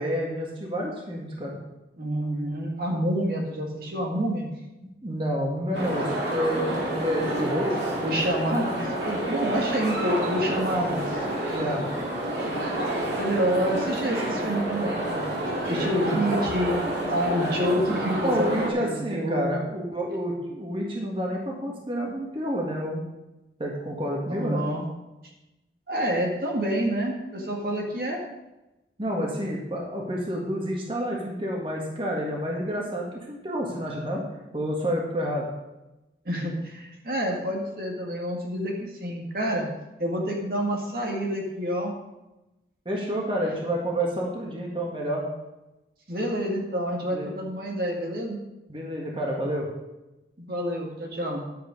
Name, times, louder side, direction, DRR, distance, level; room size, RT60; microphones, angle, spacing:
voice 1, 0.0-1.6 5.0-7.8 11.5-11.8 16.0-16.2 18.2-23.1 23.6-24.6 29.0-34.2 34.5-35.5 42.9-45.2 47.1-47.3 48.7-49.7, equal, 30° right, -1 dB, 1.8 m, -29 dB
voice 2, 2.0-4.5 8.0-11.2 13.2-16.8 17.1-19.6 24.3-24.9 25.9-28.2 36.3-39.7 40.0-41.9 46.1-48.4 50.4-51.4, equal, 55° right, 0 dB, 1.8 m, -28 dB
sound 1, 5.7-18.7, right 1 dB, 80° right, 2.6 m, -29 dB
11.5 x 7.9 x 5.2 m, 0.99 s
head